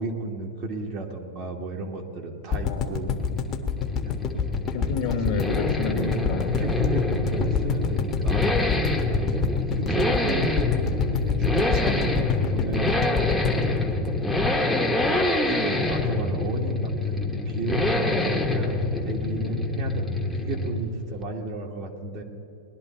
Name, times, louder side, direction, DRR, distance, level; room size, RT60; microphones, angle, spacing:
voice 1, 0.0-3.1 4.0-4.3 5.1-8.5 9.0-10.9 11.2-13.1 13.6-14.0 15.6-22.2, right 2 dB, 45° right, 1 dB, 1.8 m, -33 dB
sound 1, 2.5-14.7 15.0-15.1 15.3-15.4, left 6 dB, 30° left, 1.2 m, -27 dB
voice 2, 2.6-3.2 4.7-6.5 14.3-15.3 18.1-18.3, left 7 dB, 50° left, 5 dB, 1.3 m, -31 dB
Accelerating revving vroom, 2.8-21.0 21.2-21.3, left 2 dB, ahead, 1.1 m, -26 dB
19.0 x 11.0 x 4.5 m, 2.8 s
hypercardioid pair, 135°, 0 cm